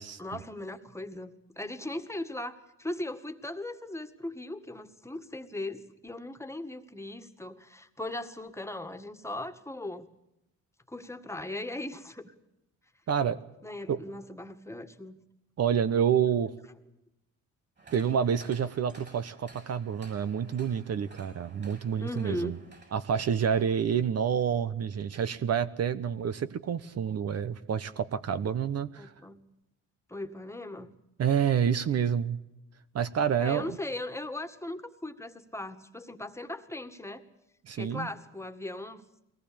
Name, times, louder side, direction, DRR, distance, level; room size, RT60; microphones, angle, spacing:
voice 1, 0.2-10.1 10.9-12.3 13.6-15.2 22.0-22.6 29.0-29.4 30.1-30.9 33.4-37.2 37.8-39.0, left 1 dB, 10° left, 7 dB, 1.9 m, -38 dB
voice 2, 13.1-13.4 13.9-14.0 15.6-16.5 17.9-22.6 22.9-29.1 31.2-32.4 32.9-33.8 37.7-38.1, right 8 dB, 55° right, 13 dB, 1.1 m, -28 dB
sound 1, 17.8-24.0 24.4-24.5, right 3 dB, 35° right, 7.5 m, -55 dB
22.5 x 18.5 x 8.7 m, 0.87 s
cardioid pair, 90°, 30 cm